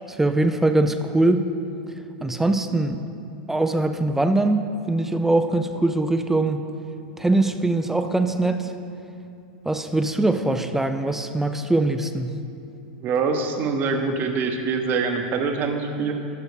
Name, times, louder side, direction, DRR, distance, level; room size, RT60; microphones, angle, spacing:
voice 1, 0.1-1.4 2.2-3.0 3.5-6.6 7.2-8.7 9.7-12.4, right 2 dB, 5° right, 8 dB, 0.4 m, -22 dB
voice 2, 13.0-16.1, right 4 dB, 40° right, 4 dB, 0.9 m, -24 dB
11.5 x 5.6 x 3.4 m, 2.6 s
hypercardioid pair, 110°, 5 cm